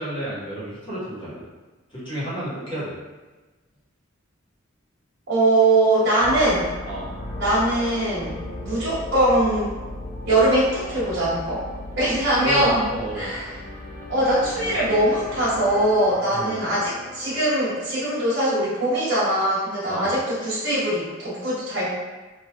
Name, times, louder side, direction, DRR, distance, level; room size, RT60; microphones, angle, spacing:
voice 1, 0.0-1.4 1.9-2.9 6.8-7.1 12.4-13.3 16.3-16.6 19.9-20.1, right 1 dB, 25° left, -11 dB, 1.3 m, -32 dB
voice 2, 5.3-6.7 7.4-9.7 10.3-11.6 12.0-12.8 13.1-13.5 14.1-21.9, right 1 dB, 55° right, -10 dB, 1.1 m, -21 dB
sound 1, 6.2-18.1, left 1 dB, 40° left, 0.4 m, -36 dB
3.1 x 2.7 x 2.3 m, 1.2 s
head